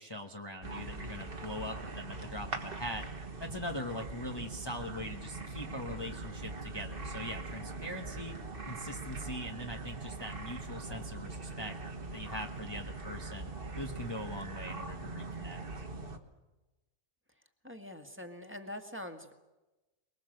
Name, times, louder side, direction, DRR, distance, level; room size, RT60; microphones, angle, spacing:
voice 1, 0.0-3.0 3.4-8.4 8.7-11.7 12.1-15.6, left 1 dB, 20° left, 2 dB, 1.1 m, -42 dB
sound 1, 0.6-16.2, right 3 dB, 50° right, 1.7 m, -42 dB
voice 2, 17.6-19.3, left 1 dB, 10° right, 5 dB, 1.8 m, -44 dB
24.0 x 21.0 x 7.8 m, 1.1 s
omnidirectional pair, 1.2 m